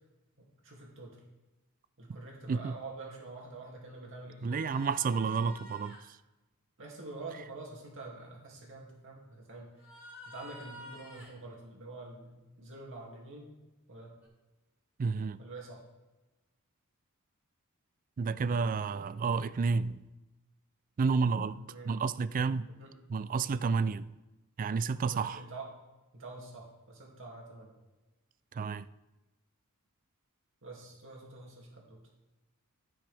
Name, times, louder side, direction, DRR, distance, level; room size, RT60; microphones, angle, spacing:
voice 1, 0.4-1.2 2.0-4.8 6.8-9.7 10.3-13.5 13.9-14.1 15.4-15.8 21.6-22.0 22.7-22.9 25.1-25.7 26.1-27.7 30.6-32.0, right 3 dB, 60° right, 2.6 m, -46 dB
voice 2, 4.4-6.0 15.0-15.4 18.2-20.1 21.0-22.7 23.1-24.1 24.6-25.5 28.5-28.9, right 5 dB, 40° right, 0.3 m, -30 dB
sound 1, 4.5-6.0 9.8-11.4 14.2-14.3, left 2 dB, 10° right, 3.8 m, -50 dB
14.5 x 6.3 x 3.4 m
head